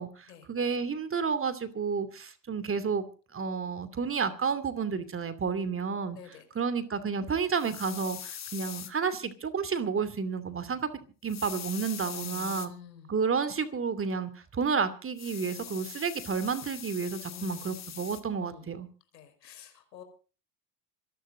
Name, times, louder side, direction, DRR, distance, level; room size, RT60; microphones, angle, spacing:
voice 1, 0.0-3.0 3.3-6.2 6.5-10.9 11.2-12.7 13.1-18.9, right 5 dB, 25° right, 2.6 m, -31 dB
voice 2, 6.1-6.5 12.1-13.1 17.3-17.7 18.4-18.7 19.1-20.0, left 8 dB, 80° left, 5.2 m, -48 dB
sound 1, 7.6-8.9 11.3-12.7 15.2-18.2, left 9 dB, 35° left, 2.4 m, -42 dB
26.0 x 11.5 x 3.8 m
hypercardioid pair, 80°, 49 cm